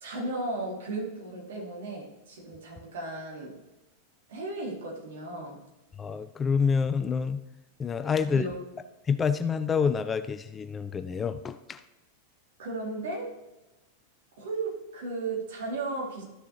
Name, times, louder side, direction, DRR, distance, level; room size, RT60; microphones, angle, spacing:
voice 1, 0.0-3.6 4.3-5.6 8.3-8.6 12.6-13.4 14.4-16.2, right 2 dB, 60° right, -2 dB, 2.8 m, -35 dB
voice 2, 6.0-7.4 7.8-8.4 9.1-11.8, left 6 dB, 20° left, 11 dB, 0.4 m, -27 dB
13.0 x 6.8 x 3.1 m, 1.0 s
figure-of-eight pair, 90°, 0 cm